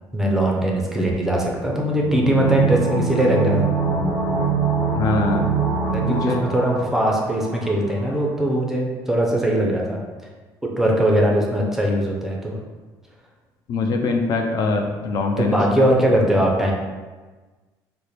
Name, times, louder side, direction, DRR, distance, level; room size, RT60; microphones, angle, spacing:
voice 1, 0.1-3.7 5.9-10.0 10.6-12.6 15.4-16.7, equal, 5° right, -2 dB, 0.5 m, -20 dB
sound 1, 2.0-7.7 7.9-8.0, right 5 dB, 25° left, 1.3 m, -23 dB
voice 2, 4.9-5.5 6.1-6.4 13.7-15.9, left 3 dB, 50° left, 4 dB, 0.3 m, -23 dB
3.3 x 2.0 x 4.1 m, 1.3 s
cardioid pair, 145°, 8 cm